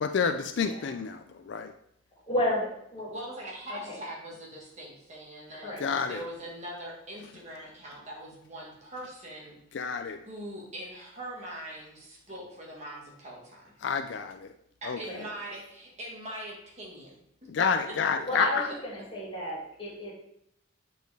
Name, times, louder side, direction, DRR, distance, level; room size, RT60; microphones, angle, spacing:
voice 1, 0.0-1.2 1.5-1.7 5.8-6.2 9.7-10.2 13.8-14.5 14.8-15.0 17.5-18.7, left 6 dB, 60° left, 7 dB, 0.3 m, -29 dB
voice 2, 2.3-3.1 3.7-4.0 5.6-5.8 15.0-15.2 18.3-20.1, left 1 dB, 25° left, -6 dB, 2.5 m, -32 dB
voice 3, 3.1-9.9 10.2-13.7 14.8-17.1 17.4-17.5 17.9-18.0, right 1 dB, 35° right, -3 dB, 1.6 m, -42 dB
8.0 x 4.3 x 3.4 m, 0.74 s
head